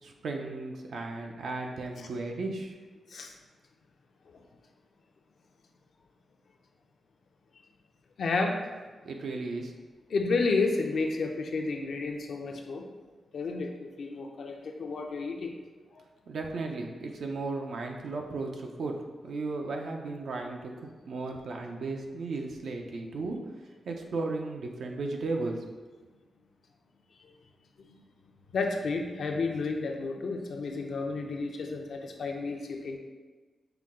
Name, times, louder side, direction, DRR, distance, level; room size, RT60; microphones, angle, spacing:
voice 1, 0.0-2.7 9.0-9.7 16.3-19.0 19.2-23.4 23.9-25.7, right 3 dB, 75° right, 2 dB, 0.6 m, -35 dB
voice 2, 8.2-8.6 10.1-12.9 13.3-15.6 15.9-16.0 27.2-27.3 27.9-28.0 28.5-33.0, left 3 dB, 70° left, 2 dB, 0.5 m, -31 dB
5.7 x 2.3 x 3.6 m, 1.4 s
cardioid pair, 90°, 0 cm